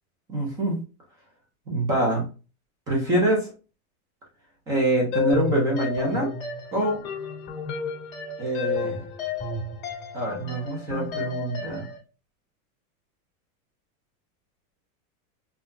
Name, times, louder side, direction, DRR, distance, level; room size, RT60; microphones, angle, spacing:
voice 1, 0.3-0.8 1.7-2.2 2.9-3.5 4.7-6.3 6.7-7.0 8.4-9.0 10.1-11.9, right 1 dB, 10° right, -1 dB, 0.4 m, -25 dB
sound 1, 5.1-12.0, left 5 dB, 25° left, 1.8 m, -31 dB
5.6 x 2.2 x 2.5 m, 0.33 s
supercardioid pair, 170°, 44 cm